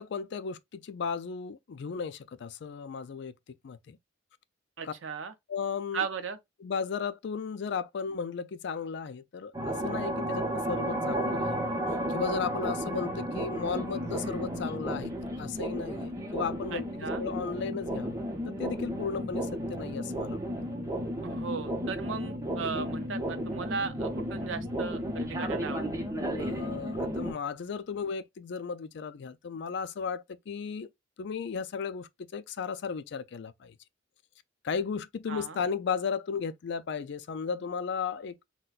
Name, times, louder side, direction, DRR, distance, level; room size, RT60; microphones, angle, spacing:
voice 1, 0.0-3.3 3.6-4.0 4.8-4.9 5.5-6.1 6.6-15.1 15.4-18.2 18.5-20.4 26.4-30.9 31.2-33.7 34.6-38.4, left 6 dB, 65° left, 0.4 m, -35 dB
voice 2, 4.8-5.3 5.9-6.4 16.7-17.2 21.2-25.8 35.3-35.6, right 5 dB, 80° right, 0.6 m, -36 dB
sound 1, 9.5-27.3, equal, 15° right, 0.7 m, -33 dB
3.9 x 2.2 x 2.3 m
head